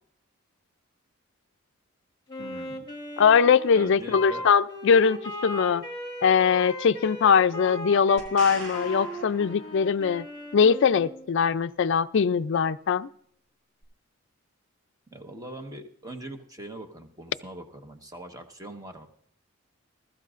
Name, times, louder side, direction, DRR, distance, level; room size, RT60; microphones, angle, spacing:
Wind instrument woodwind instrument, 2.3-11.3, left 1 dB, 20° left, 1.7 m, -38 dB
voice 1, 2.4-2.9 3.7-4.4 15.1-19.1, right 1 dB, 15° right, 5 dB, 1.2 m, -42 dB
voice 2, 3.2-5.8 6.2-10.2 10.5-13.1, left 6 dB, 60° left, 12 dB, 0.4 m, -21 dB
sound 1, 8.2-10.2 13.8-13.9, right 2 dB, 65° right, 6.4 m, -41 dB
21.0 x 13.0 x 2.5 m, 0.65 s
head